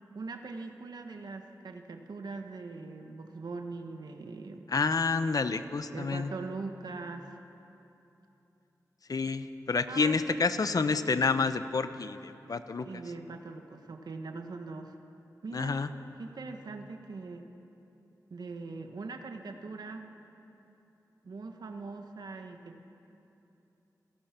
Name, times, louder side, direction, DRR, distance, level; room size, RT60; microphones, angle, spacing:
voice 1, 0.1-4.7 5.9-7.4 9.9-10.4 12.8-15.0 15.4-15.8 16.2-17.5 18.3-20.1 21.2-22.8, right 3 dB, 75° right, 5 dB, 1.4 m, -41 dB
voice 2, 4.7-6.3 9.1-12.9 15.5-15.9, left 4 dB, 60° left, 11 dB, 0.9 m, -29 dB
29.0 x 17.5 x 6.0 m, 3.0 s
wide cardioid pair, 75°, 7 cm